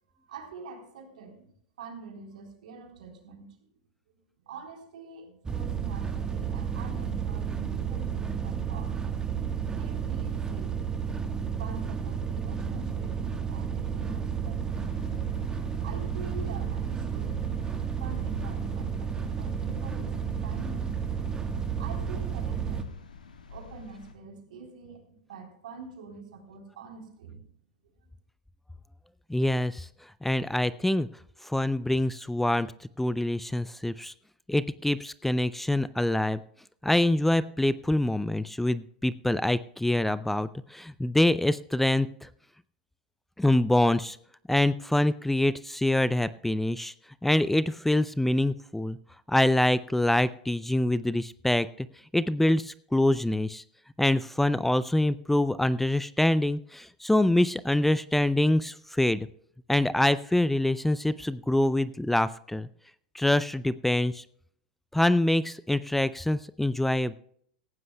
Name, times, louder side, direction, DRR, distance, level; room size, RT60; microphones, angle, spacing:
voice 1, 0.1-3.6 4.1-8.9 9.7-10.8 11.4-14.9 15.8-17.4 18.0-21.0 21.8-23.0 23.5-27.4, right 5 dB, 75° right, 2 dB, 3.7 m, -45 dB
sound 1, 5.4-22.8, right 7 dB, 15° right, 1.3 m, -32 dB
sound 2, 14.7-24.1, left 5 dB, 90° left, 1.7 m, -48 dB
voice 2, 29.3-29.9 30.2-31.1 31.4-32.7 33.0-34.1 34.5-36.4 36.8-42.3 43.4-44.2 44.5-46.9 47.2-49.0 49.3-51.9 52.1-53.6 54.0-59.3 59.7-62.7 63.1-64.2 64.9-67.1, left 1 dB, 5° left, 16 dB, 0.4 m, -25 dB
18.5 x 15.5 x 2.2 m, 0.63 s
hypercardioid pair, 100°, 4 cm